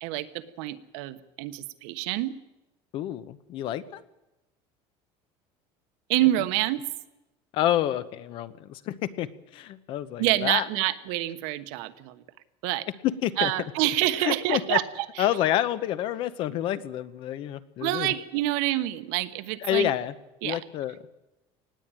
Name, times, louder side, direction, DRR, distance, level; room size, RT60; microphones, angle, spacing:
voice 1, 0.0-2.3 6.1-6.8 10.2-12.2 12.6-12.9 13.4-15.3 17.8-19.9 20.4-20.6, right 16 dB, 80° right, 11 dB, 1.2 m, -27 dB
voice 2, 2.9-4.0 7.5-9.3 9.5-10.7 13.2-13.5 14.2-14.8 15.2-18.1 19.6-20.1 20.4-21.0, left 12 dB, 45° left, 15 dB, 0.9 m, -28 dB
19.5 x 15.5 x 9.0 m, 0.97 s
cardioid pair, 175°, 12 cm